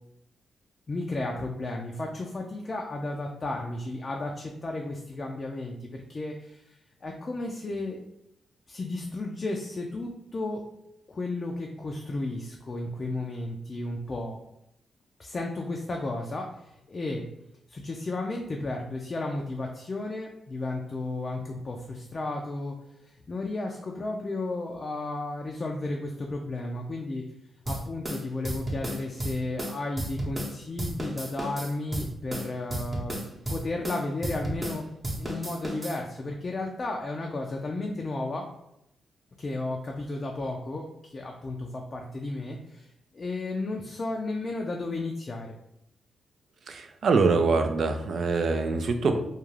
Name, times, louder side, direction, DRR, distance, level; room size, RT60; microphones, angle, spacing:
voice 1, 0.9-8.0 8.7-10.6 11.1-14.4 15.2-17.2 17.7-22.7 23.0-27.2 27.7-33.2 33.5-34.8 35.1-38.4 39.4-42.9 43.1-45.6, left 2 dB, 45° left, 1 dB, 0.3 m, -33 dB
sound 1, 27.7-30.5 30.8-34.8 35.0-36.0, right 1 dB, 35° right, 0.8 m, -33 dB
voice 2, 46.7-49.2, right 4 dB, 65° right, 6 dB, 0.3 m, -24 dB
2.4 x 2.2 x 3.1 m, 0.81 s
cardioid pair, 65°, 0 cm